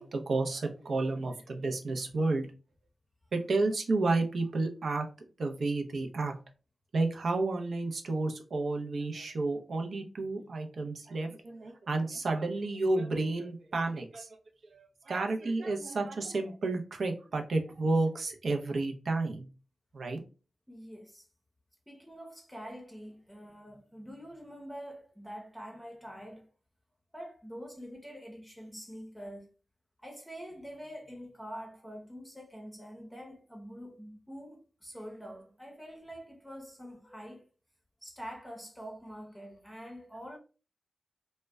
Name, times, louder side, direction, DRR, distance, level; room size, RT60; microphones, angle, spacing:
voice 1, 0.0-2.5 3.3-5.1 5.4-6.3 6.9-14.4 14.7-19.5 19.9-20.2, right 3 dB, 75° right, 0.5 m, -31 dB
voice 2, 20.7-21.3 21.9-26.5 27.1-29.5 30.0-37.4 38.0-40.4, equal, 5° left, 0.7 m, -45 dB
2.1 x 2.1 x 3.4 m
cardioid pair, 60°, 0 cm